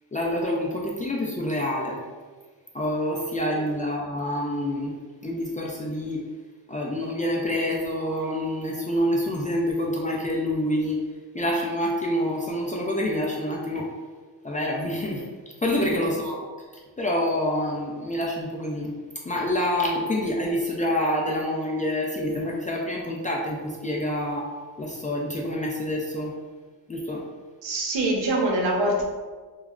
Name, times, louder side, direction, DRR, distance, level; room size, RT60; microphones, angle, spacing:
voice 1, 0.1-2.0 2.7-4.9 5.2-6.3 6.7-11.0 11.3-13.9 14.4-15.3 15.6-16.4 17.0-19.0 19.2-26.3 26.9-27.3, left 1 dB, 20° left, -2 dB, 0.3 m, -27 dB
voice 2, 27.6-29.0, right 1 dB, 80° right, 0 dB, 0.7 m, -25 dB
2.3 x 2.1 x 3.5 m, 1.4 s
cardioid pair, 85°, 44 cm